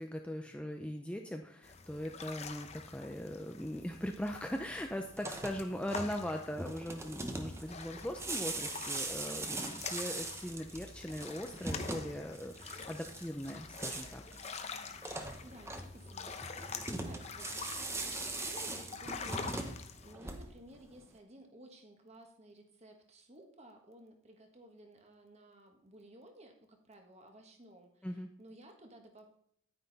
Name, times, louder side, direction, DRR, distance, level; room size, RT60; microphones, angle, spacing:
voice 1, 0.0-14.2 28.0-28.3, equal, 5° left, 3 dB, 0.5 m, -40 dB
sound 1, 1.6-20.1, left 5 dB, 30° left, 0.8 m, -47 dB
sound 2, 5.1-20.8, right 2 dB, 15° right, 0.9 m, -41 dB
voice 2, 15.2-29.3, right 1 dB, 30° right, 4 dB, 1.4 m, -56 dB
9.9 x 9.4 x 4.1 m, 0.69 s
head